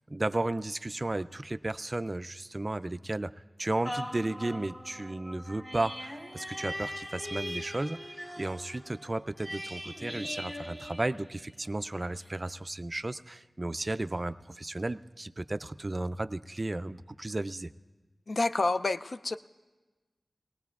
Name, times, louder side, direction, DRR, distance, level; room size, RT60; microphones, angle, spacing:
voice 1, 0.1-3.3 3.6-8.0 8.4-17.7, right 2 dB, 35° right, 14 dB, 0.3 m, -34 dB
sound 1, 3.8-11.7 12.2-12.3, equal, 20° left, 1.1 m, -41 dB
voice 2, 18.3-19.4, left 3 dB, 65° left, 10 dB, 0.3 m, -28 dB
19.0 x 19.0 x 2.4 m, 1.3 s
wide cardioid pair, 85°, 0 cm